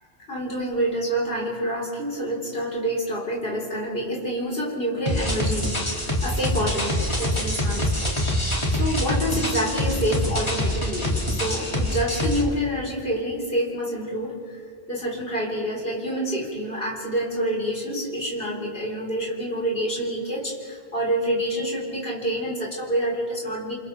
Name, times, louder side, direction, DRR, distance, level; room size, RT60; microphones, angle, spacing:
voice 1, 0.3-8.2 8.7-14.6 14.9-23.7, equal, 60° left, -4 dB, 4.4 m, -27 dB
sound 1, 5.1-12.4, left 1 dB, 25° left, 2.7 m, -25 dB
29.5 x 28.5 x 3.5 m, 2.2 s
omnidirectional pair, 1.1 m